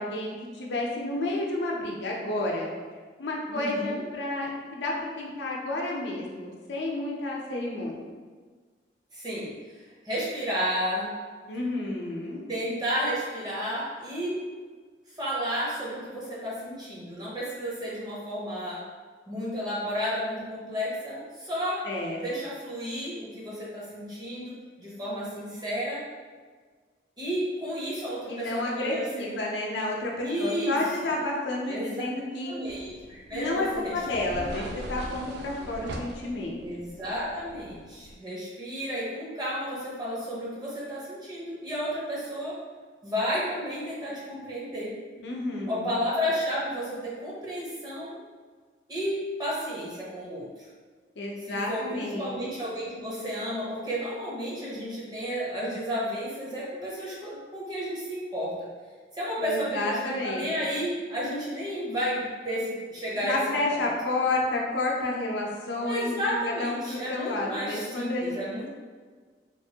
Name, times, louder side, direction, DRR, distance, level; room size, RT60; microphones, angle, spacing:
voice 1, 0.0-2.7 3.2-8.0 11.5-12.4 21.8-22.4 28.3-32.5 33.3-36.6 45.2-46.0 51.2-52.3 59.4-60.5 63.2-68.7, left 2 dB, 85° left, -2 dB, 0.6 m, -30 dB
voice 2, 3.5-4.0 9.1-11.1 12.5-14.4 15.1-18.8 19.3-21.9 22.2-26.0 27.2-29.4 30.2-31.1 31.7-32.0 32.5-34.0 34.3-34.6 36.6-42.6 43.0-45.0 45.7-48.2 48.9-50.7 51.5-58.7 59.1-63.4 63.7-63.9 65.8-68.7, equal, 25° right, -7 dB, 0.8 m, -32 dB
sound 1, 32.7-38.2, right 1 dB, 70° right, 0.3 m, -41 dB
3.0 x 2.5 x 2.8 m, 1.5 s
head